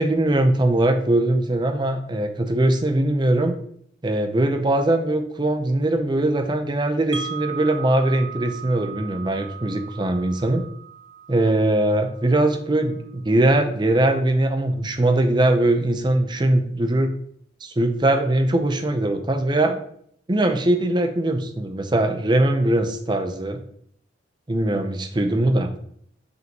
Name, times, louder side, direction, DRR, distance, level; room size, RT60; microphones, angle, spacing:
voice 1, 0.0-3.5 4.0-10.6 11.3-17.1 17.6-19.8 20.3-23.6 24.5-25.7, right 1 dB, 25° right, 6 dB, 0.6 m, -21 dB
Wind chime, 7.1-13.1, right 7 dB, 85° right, 0.8 m, -38 dB
6.2 x 5.3 x 2.9 m, 0.65 s
head